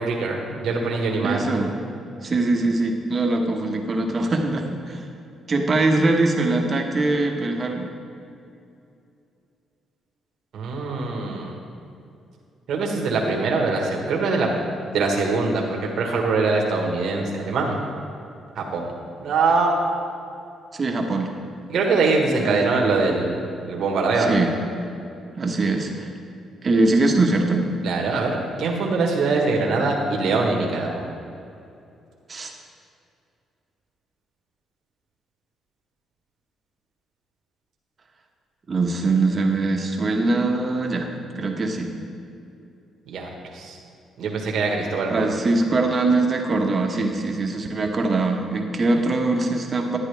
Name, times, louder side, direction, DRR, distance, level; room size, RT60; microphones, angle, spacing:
voice 1, 0.0-1.4 10.5-11.5 12.7-14.5 14.9-17.8 18.5-18.9 19.2-19.7 21.7-24.4 27.8-31.0 43.1-43.8 44.2-45.3, right 3 dB, 70° right, 0 dB, 1.5 m, -23 dB
voice 2, 1.2-1.7 2.2-5.0 5.5-7.9 20.7-21.3 22.4-22.6 24.2-24.6 25.4-26.1 26.6-27.7 32.3-32.5 38.7-41.1 41.3-41.9 45.1-50.0, right 2 dB, 40° right, 2 dB, 1.2 m, -22 dB
11.0 x 9.6 x 3.4 m, 2.6 s
cardioid pair, 90°, 0 cm